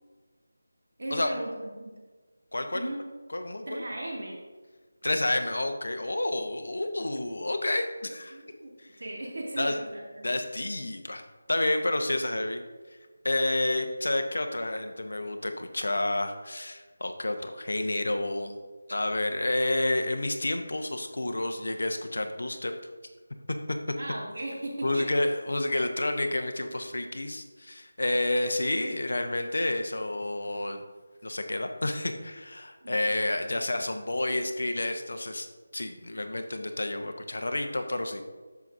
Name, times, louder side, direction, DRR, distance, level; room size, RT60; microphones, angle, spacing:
voice 1, 1.0-1.5 1.8-1.9 2.7-3.0 3.7-4.4 8.3-8.7 9.0-10.3 24.0-25.1 32.8-33.3 33.7-33.8, right 1 dB, 55° right, -2 dB, 2.1 m, -37 dB
voice 2, 2.5-2.9 3.3-3.8 5.0-8.4 9.6-9.8 10.2-11.2 11.5-12.6 13.2-18.6 18.9-22.7 24.8-30.8 31.2-35.5 35.7-38.2, left 1 dB, 70° left, 6 dB, 0.8 m, -29 dB
10.5 x 7.0 x 2.6 m, 1.4 s
figure-of-eight pair, 180°, 0 cm